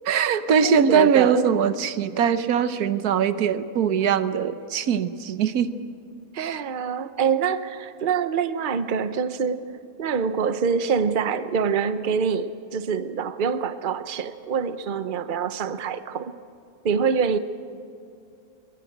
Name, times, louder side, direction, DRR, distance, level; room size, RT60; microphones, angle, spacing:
voice 1, 0.1-5.7 6.3-6.6, right 7 dB, 90° right, 13 dB, 1.4 m, -22 dB
voice 2, 0.6-1.6 6.4-9.7 10.0-16.3 16.8-17.4, right 6 dB, 40° right, 12 dB, 0.9 m, -25 dB
22.0 x 20.5 x 8.0 m, 2.5 s
omnidirectional pair, 1.6 m